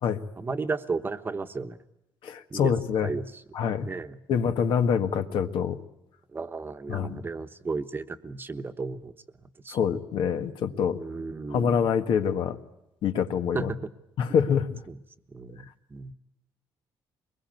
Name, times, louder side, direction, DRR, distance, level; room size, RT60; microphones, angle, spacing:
voice 1, 0.4-1.8 2.5-2.7 3.0-3.4 3.8-4.2 6.3-9.1 9.6-9.8 10.9-11.9 13.5-13.8 14.9-15.0 15.3-16.1, right 4 dB, 25° right, 9 dB, 1.1 m, -34 dB
voice 2, 2.2-3.1 3.5-3.9 4.3-5.8 6.9-7.2 9.7-11.0 11.5-12.6 13.0-13.7 14.2-14.8, left 7 dB, 75° left, 8 dB, 1.8 m, -25 dB
23.5 x 21.0 x 9.3 m, 0.87 s
cardioid pair, 140°, 9 cm